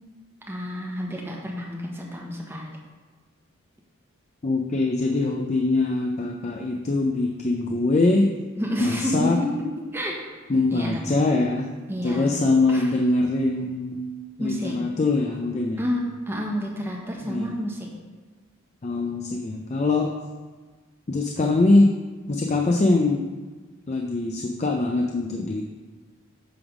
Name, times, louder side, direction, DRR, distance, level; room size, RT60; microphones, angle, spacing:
voice 1, 0.5-2.8 8.6-9.6 9.9-10.3 10.7-11.0 11.9-12.3 12.7-12.9 14.4-14.8 15.8-17.9, left 1 dB, 10° right, -2 dB, 1.1 m, -29 dB
voice 2, 4.4-8.3 8.8-9.4 10.5-11.7 12.0-14.0 14.4-15.8 17.2-17.6 18.8-20.1 21.1-21.9 22.3-23.3 23.9-25.6, left 2 dB, 35° left, 2 dB, 0.4 m, -23 dB
8.6 x 3.5 x 6.0 m, 1.4 s
head